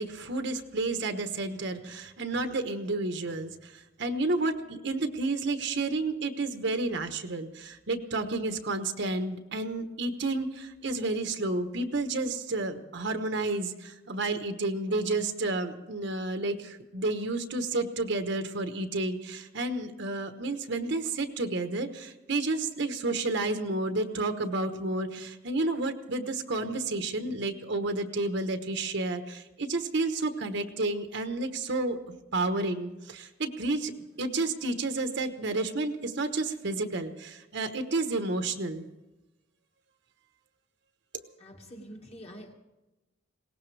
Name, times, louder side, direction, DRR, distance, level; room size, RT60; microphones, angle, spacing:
voice 1, 0.0-33.9 34.2-38.9, right 2 dB, 65° right, 7 dB, 1.2 m, -31 dB
voice 2, 41.4-42.5, equal, 35° left, 1 dB, 2.0 m, -46 dB
21.5 x 18.0 x 3.4 m, 1.1 s
head